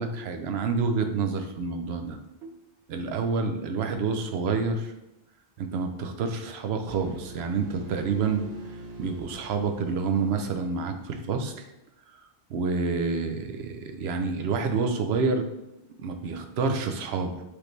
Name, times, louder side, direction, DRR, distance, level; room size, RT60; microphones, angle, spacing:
voice 1, 0.0-2.6 2.9-4.9 5.6-8.5 9.0-11.6 12.5-15.4 16.0-17.3, right 4 dB, 85° right, 6 dB, 0.8 m, -28 dB
sound 1, 6.9-10.8, right 2 dB, 50° right, 0.6 m, -43 dB
4.8 x 3.2 x 3.1 m, 0.90 s
omnidirectional pair, 1.0 m